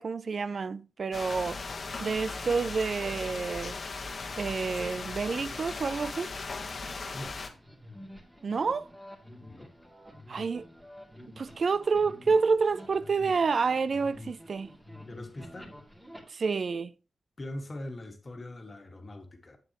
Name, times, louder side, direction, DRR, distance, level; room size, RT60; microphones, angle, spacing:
voice 1, 0.0-1.6 2.0-3.7 4.4-6.3 8.4-8.9 10.3-10.7 11.4-14.7 16.3-16.9, right 5 dB, 55° right, 0.3 m, -28 dB
sound 1, 1.1-7.5, left 3 dB, 50° left, 1.1 m, -38 dB
voice 2, 7.1-7.5 9.5-9.7 15.1-15.7 17.4-19.6, left 1 dB, 35° left, 1.7 m, -42 dB
sound 2, 7.2-16.2, left 1 dB, 10° right, 2.3 m, -49 dB
8.1 x 7.6 x 2.9 m
wide cardioid pair, 100°, 0 cm